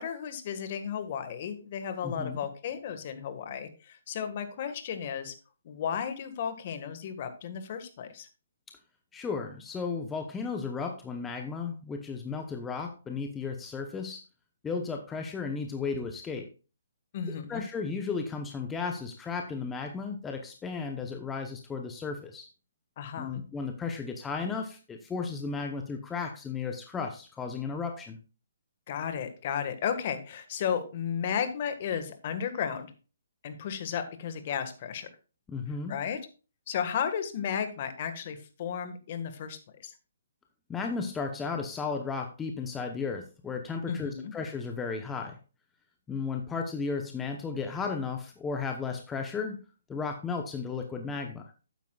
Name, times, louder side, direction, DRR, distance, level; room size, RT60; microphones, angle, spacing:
voice 1, 0.0-5.3 5.6-8.3 17.1-17.6 23.0-23.4 28.9-32.9 33.4-35.1 35.9-36.2 36.7-39.9 43.9-44.3, left 8 dB, 45° left, 9 dB, 1.6 m, -34 dB
voice 2, 2.0-2.4 9.1-14.2 14.6-16.5 17.5-22.5 23.2-28.2 35.5-36.0 40.7-45.4 46.1-49.6 49.9-51.4, left 5 dB, 10° left, 4 dB, 0.9 m, -34 dB
12.0 x 9.2 x 2.4 m, 0.34 s
hypercardioid pair, 145°, 0 cm